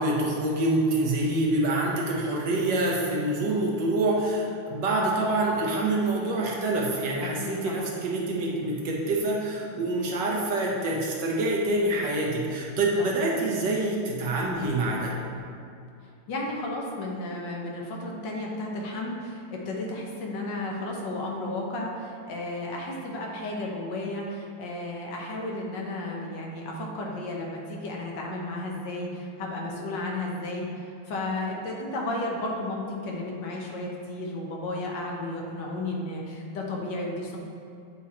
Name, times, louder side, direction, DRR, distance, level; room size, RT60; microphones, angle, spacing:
voice 1, 0.0-15.2, right 2 dB, 70° right, -2 dB, 1.2 m, -26 dB
voice 2, 7.2-7.9 13.0-13.1 16.3-37.4, left 2 dB, 70° left, -1 dB, 1.4 m, -33 dB
8.4 x 3.0 x 4.1 m, 2.6 s
omnidirectional pair, 2.3 m